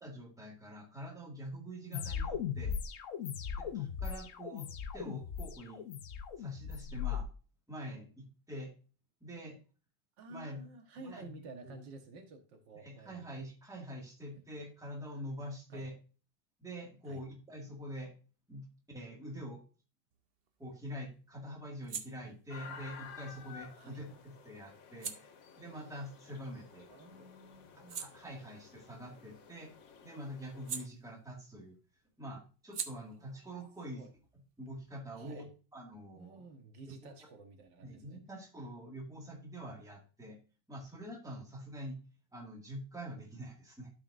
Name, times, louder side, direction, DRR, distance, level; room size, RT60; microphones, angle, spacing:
voice 1, 0.0-2.8 3.6-4.7 4.9-5.8 6.4-7.3 7.7-8.7 9.2-9.6 10.3-10.6 11.0-11.4 11.6-11.8 12.7-16.0 16.6-18.2 18.5-19.6 20.6-24.2 24.4-25.2 25.6-26.9 27.7-29.7 30.0-31.8 32.2-34.1 34.6-35.5 35.7-36.4 36.9-37.1 37.8-40.4 40.7-42.0 42.3-43.9, equal, ahead, 0 dB, 1.7 m, -45 dB
sound 1, 1.9-7.2, left 7 dB, 60° left, 0.9 m, -38 dB
voice 2, 10.2-13.3 15.7-15.9 17.1-17.2 23.8-24.0 26.9-28.0 33.2-34.1 35.2-35.5 36.2-38.2, right 2 dB, 80° right, 5 dB, 1.9 m, -52 dB
sound 2, 20.1-27.0 27.4-31.6 31.9-35.3, right 6 dB, 60° right, 0.6 m, -49 dB
sound 3, 22.5-30.9, left 6 dB, 80° left, 1.7 m, -53 dB
12.0 x 4.9 x 2.5 m, 0.35 s
omnidirectional pair, 2.0 m